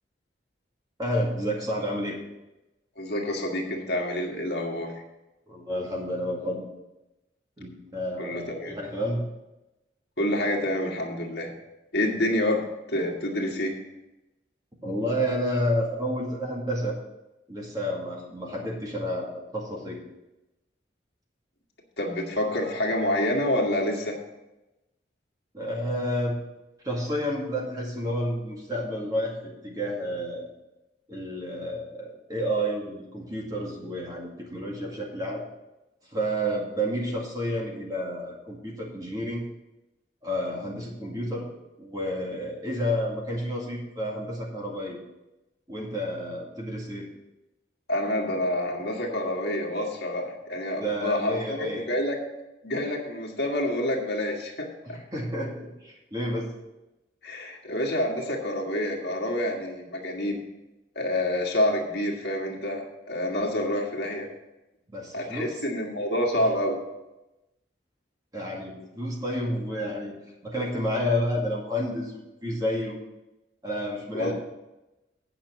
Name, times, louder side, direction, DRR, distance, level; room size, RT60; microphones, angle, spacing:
voice 1, 1.0-2.2 5.5-6.6 7.6-9.3 14.8-17.0 17.5-20.0 25.5-26.4 26.8-30.5 31.1-35.5 36.1-39.4 40.2-41.5 41.8-45.0 45.7-47.1 50.8-51.9 54.8-56.5 64.9-65.6 66.4-66.5 68.3-70.2 70.4-73.0 73.6-74.3, equal, 20° right, -3 dB, 2.0 m, -30 dB
voice 2, 3.0-4.9 8.2-8.8 10.2-11.5 11.9-12.6 12.9-13.8 22.0-24.2 47.9-52.2 52.6-55.0 57.2-60.4 61.0-64.3 65.1-66.8 74.1-74.3, left 1 dB, 60° left, 0 dB, 1.8 m, -28 dB
9.0 x 5.9 x 7.4 m, 0.98 s
head